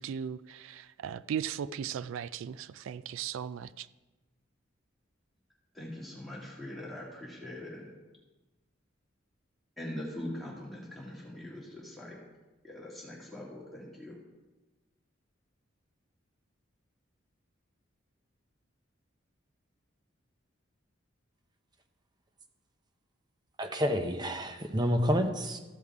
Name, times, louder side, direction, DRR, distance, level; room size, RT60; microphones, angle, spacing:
voice 1, 0.0-3.9, right 8 dB, 90° right, 0.3 m, -37 dB
voice 2, 5.7-7.8 9.8-12.2 12.6-14.2, left 1 dB, ahead, 2.4 m, -42 dB
voice 3, 23.6-25.6, equal, 20° right, 0.8 m, -29 dB
14.5 x 5.4 x 4.9 m
head